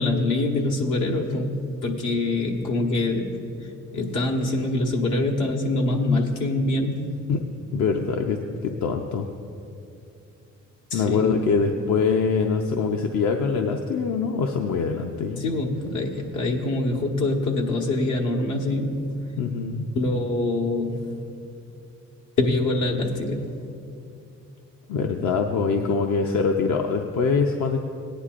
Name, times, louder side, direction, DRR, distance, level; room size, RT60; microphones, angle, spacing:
voice 1, 0.0-3.4 3.9-7.1 10.9-11.4 15.4-19.1 19.9-21.1 22.4-23.5, left 2 dB, 85° left, 1 dB, 1.5 m, -24 dB
voice 2, 7.7-9.3 10.9-15.4 19.4-19.9 24.9-27.8, left 5 dB, 70° left, 3 dB, 0.7 m, -24 dB
17.5 x 10.0 x 2.5 m, 2.6 s
cardioid pair, 90°, 30 cm